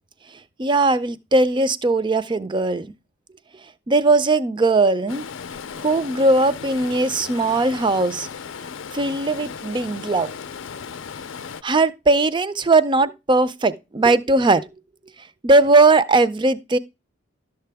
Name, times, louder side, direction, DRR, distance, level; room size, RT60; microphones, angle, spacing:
voice 1, 0.6-2.9 3.9-5.3 5.7-8.3 8.9-10.3 11.6-14.7 15.4-16.8, right 3 dB, 25° right, 0.5 m, -19 dB
Stream, 5.1-11.6, left 6 dB, 70° left, 0.5 m, -36 dB
12.0 x 6.7 x 3.4 m
head